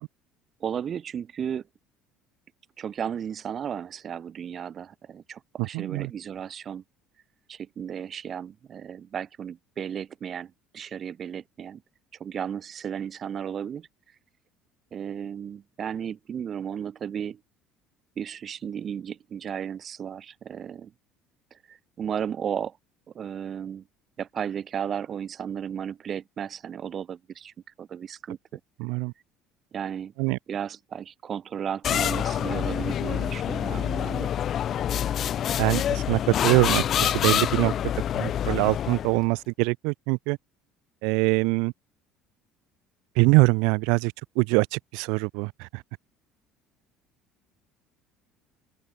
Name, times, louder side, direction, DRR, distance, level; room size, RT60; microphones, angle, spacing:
voice 1, 0.6-1.6 2.8-6.8 7.5-11.8 12.2-13.9 14.9-17.4 18.2-20.9 21.5-22.8 23.1-23.8 24.2-28.6 29.7-30.1 30.5-34.3, right 8 dB, 40° right, 3.2 m, -34 dB
voice 2, 5.6-6.1 28.8-29.1 30.2-30.4 35.6-37.7 38.1-40.4 41.0-41.7 43.2-45.8, right 30 dB, 80° right, 1.0 m, -24 dB
sound 1, 31.8-39.2, left 10 dB, 45° left, 1.6 m, -26 dB
open air
cardioid pair, 110°, 0 cm